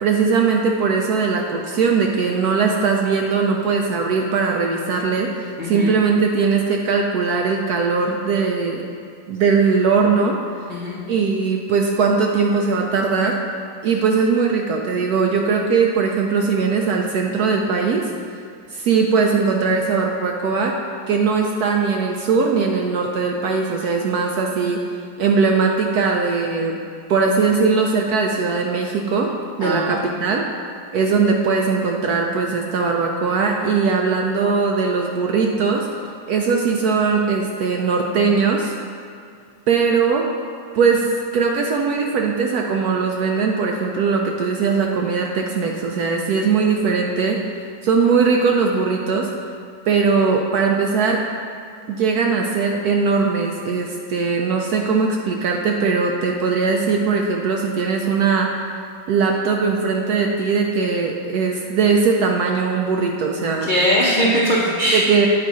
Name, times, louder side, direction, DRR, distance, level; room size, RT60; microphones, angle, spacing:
voice 1, 0.0-8.9 9.3-10.4 11.1-13.4 13.8-18.1 18.7-20.7 21.1-24.8 25.2-26.8 27.1-29.3 29.6-30.4 30.9-35.9 36.3-38.7 39.7-40.2 40.7-47.4 47.8-49.3 49.9-51.2 51.9-58.6 59.1-63.7 64.9-65.3, right 5 dB, 75° right, 1 dB, 0.9 m, -20 dB
voice 2, 5.6-6.0 10.7-11.0 29.6-29.9 63.6-65.0, equal, 75° left, -5 dB, 0.4 m, -20 dB
9.2 x 4.1 x 4.7 m, 2.3 s
omnidirectional pair, 2.1 m